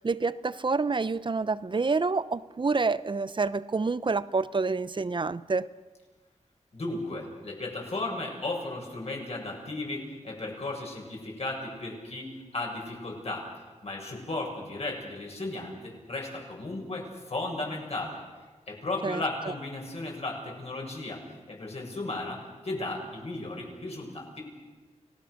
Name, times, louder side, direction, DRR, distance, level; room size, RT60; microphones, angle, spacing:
voice 1, 0.0-5.7 19.0-19.2, right 4 dB, 40° right, 16 dB, 0.8 m, -28 dB
voice 2, 6.7-13.5 13.8-18.2 18.7-21.2 21.5-24.5, left 2 dB, 55° left, -1 dB, 7.3 m, -35 dB
30.0 x 18.5 x 6.6 m, 1.3 s
wide cardioid pair, 85°, 12 cm